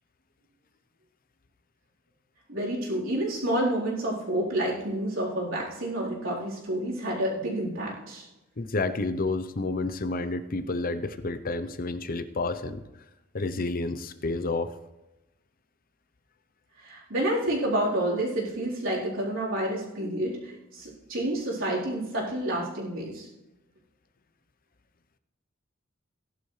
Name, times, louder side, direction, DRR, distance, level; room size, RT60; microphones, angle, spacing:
voice 1, 2.5-8.3 16.8-23.3, right 1 dB, 75° right, -5 dB, 4.1 m, -29 dB
voice 2, 8.6-12.8 13.3-14.7, left 3 dB, 45° left, 11 dB, 0.7 m, -30 dB
17.5 x 11.5 x 3.3 m, 0.99 s
head